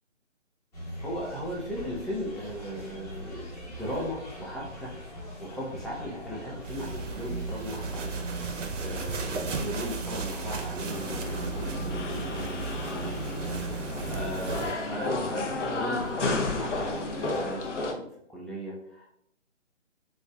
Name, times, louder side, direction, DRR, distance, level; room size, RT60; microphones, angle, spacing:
sound 1, 0.7-17.4, left 1 dB, 30° left, 1.0 m, -44 dB
voice 1, 1.0-8.0 8.4-13.3 13.7-19.1, equal, ahead, -5 dB, 0.3 m, -37 dB
sound 2, 6.6-14.7, right 4 dB, 75° right, 0.6 m, -34 dB
sound 3, 10.9-17.9, left 2 dB, 70° left, 0.7 m, -32 dB
3.6 x 2.2 x 2.2 m, 0.76 s
hypercardioid pair, 170°, 37 cm